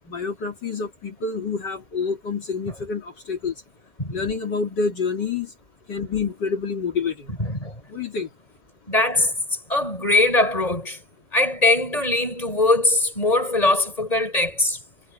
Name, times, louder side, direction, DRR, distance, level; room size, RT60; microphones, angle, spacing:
voice 1, 0.1-3.5 4.1-5.5 5.9-7.3 7.9-8.3, left 5 dB, 65° left, 3.2 m, -27 dB
voice 2, 7.4-7.7 8.9-9.4 9.7-11.0 11.3-14.8, left 2 dB, 20° left, 6.2 m, -21 dB
omnidirectional pair, 2.0 m